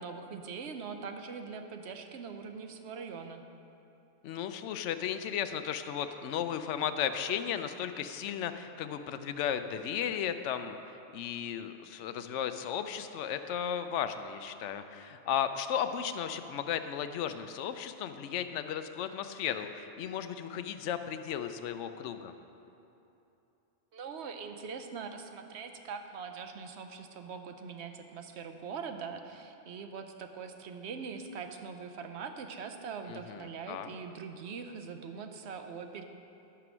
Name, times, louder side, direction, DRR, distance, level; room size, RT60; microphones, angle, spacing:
voice 1, 0.0-3.4 23.9-36.0, right 5 dB, 65° right, 6 dB, 1.0 m, -42 dB
voice 2, 4.2-10.8 11.1-22.3 33.1-33.9, left 9 dB, 75° left, 9 dB, 0.9 m, -35 dB
13.0 x 6.1 x 6.1 m, 2.9 s
omnidirectional pair, 1.3 m